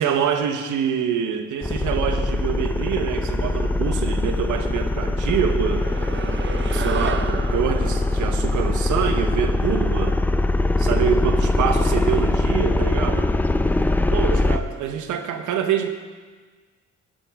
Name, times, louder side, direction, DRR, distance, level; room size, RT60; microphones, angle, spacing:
voice 1, 0.0-5.8 6.7-10.2 10.8-13.3 14.1-15.9, right 8 dB, 80° right, 7 dB, 1.1 m, -25 dB
sound 1, 1.6-14.6, left 2 dB, 5° left, 0.5 m, -22 dB
sound 2, 5.5-10.2, right 6 dB, 40° right, 0.7 m, -34 dB
12.5 x 10.5 x 3.6 m, 1.4 s
cardioid pair, 90°, 30 cm